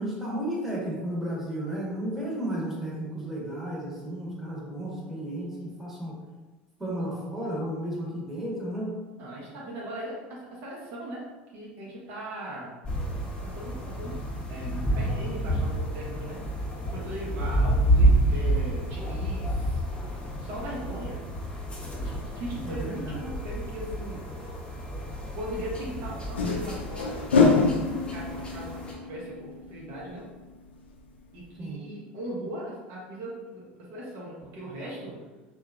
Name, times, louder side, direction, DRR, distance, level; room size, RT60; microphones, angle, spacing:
voice 1, 0.0-6.2 6.8-8.9 22.6-23.2 31.6-31.8, right 1 dB, 5° right, -6 dB, 1.0 m, -33 dB
voice 2, 9.2-11.3 11.5-12.8 13.4-14.2 14.5-16.4 16.9-19.8 20.4-21.2 22.0-24.2 25.3-27.2 28.1-30.3 31.3-35.2, right 1 dB, 55° right, -5 dB, 0.8 m, -38 dB
sound 1, 12.8-28.9, right 1 dB, 15° left, 0.7 m, -29 dB
sound 2, 24.8-24.9 26.2-30.7 31.0-31.1 31.4-31.5, left 4 dB, 85° left, 0.4 m, -26 dB
2.7 x 2.2 x 2.4 m, 1.2 s
hypercardioid pair, 75°, 6 cm